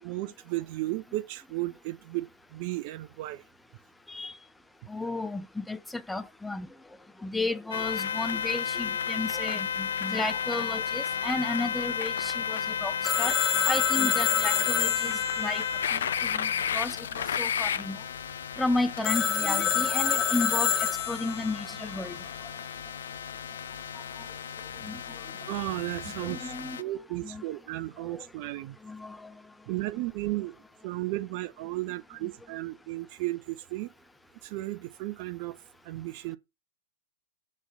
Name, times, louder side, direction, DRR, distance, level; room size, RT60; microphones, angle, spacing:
voice 1, 0.0-3.4 25.4-28.8 29.7-30.6 30.8-33.9 34.4-35.6 35.8-36.4, right 18 dB, 50° right, 0.5 m, -34 dB
voice 2, 4.9-6.7 7.2-13.3 13.7-15.6 15.9-18.0 18.6-22.2 24.8-25.0 26.2-26.8 27.2-27.4 28.1-28.3 28.8-29.3, left 2 dB, 5° left, 0.5 m, -33 dB
sound 1, 7.7-26.8, left 8 dB, 70° left, 0.4 m, -33 dB
Telephone, 13.0-16.7 19.0-21.6, left 8 dB, 25° left, 1.0 m, -27 dB
7.5 x 3.2 x 6.0 m
figure-of-eight pair, 105°, 0 cm